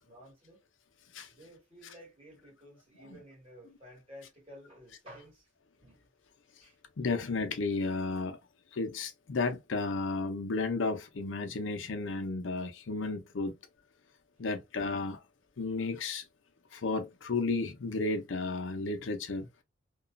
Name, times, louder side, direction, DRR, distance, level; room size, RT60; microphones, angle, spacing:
voice 1, 0.0-0.6 1.3-5.5 5.8-6.0 6.6-6.8 14.4-14.5, equal, 30° right, 1.6 m, -53 dB
voice 2, 7.0-8.4 8.7-13.6 14.4-15.2 15.6-16.2 16.7-19.5, left 3 dB, 80° left, 0.6 m, -33 dB
2.9 x 2.3 x 2.4 m
head